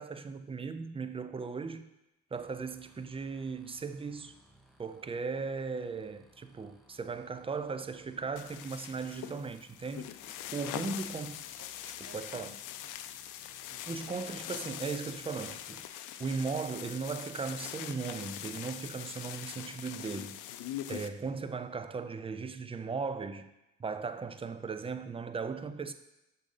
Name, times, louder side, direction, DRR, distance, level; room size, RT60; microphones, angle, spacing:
voice 1, 0.0-1.9 2.3-4.4 4.8-11.4 12.1-12.5 13.9-15.8 16.2-20.4 20.9-23.5 23.8-25.9, right 4 dB, 20° right, 0.4 m, -37 dB
sound 1, 2.3-15.9, right 1 dB, ahead, 0.8 m, -64 dB
sound 2, 8.4-21.1, left 11 dB, 90° left, 0.5 m, -43 dB
voice 2, 12.1-14.0, right 6 dB, 80° right, 0.9 m, -60 dB
6.2 x 3.9 x 5.5 m
cardioid pair, 90°, 30 cm